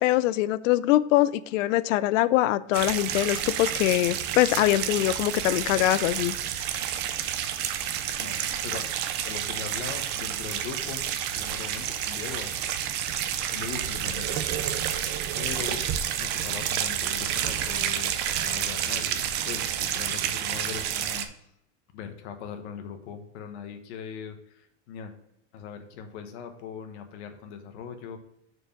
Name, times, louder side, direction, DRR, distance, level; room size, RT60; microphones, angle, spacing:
voice 1, 0.0-6.3, left 15 dB, 90° left, 17 dB, 0.5 m, -23 dB
sound 1, 2.7-21.2, right 10 dB, 30° right, 0.4 m, -30 dB
voice 2, 8.2-8.9 9.2-13.0 13.5-14.4 15.4-15.8 16.1-21.3 21.9-25.1 25.5-28.2, left 7 dB, 65° left, 6 dB, 1.3 m, -40 dB
6.5 x 4.6 x 5.7 m, 0.77 s
supercardioid pair, 170°, 37 cm